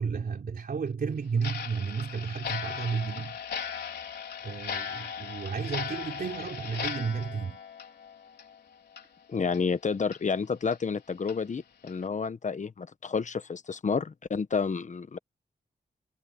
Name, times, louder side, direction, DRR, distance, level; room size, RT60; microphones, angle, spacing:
voice 1, 0.0-3.4 4.4-7.6, right 5 dB, 65° right, 3.9 m, -32 dB
Clock, 1.4-8.6 8.9-9.0 9.5-9.6 10.1-10.2 10.7-10.8 11.3-11.4 11.9-12.0, left 7 dB, 80° left, 4.5 m, -37 dB
voice 2, 9.3-15.2, left 5 dB, 50° left, 1.2 m, -30 dB
cardioid pair, 70°, 17 cm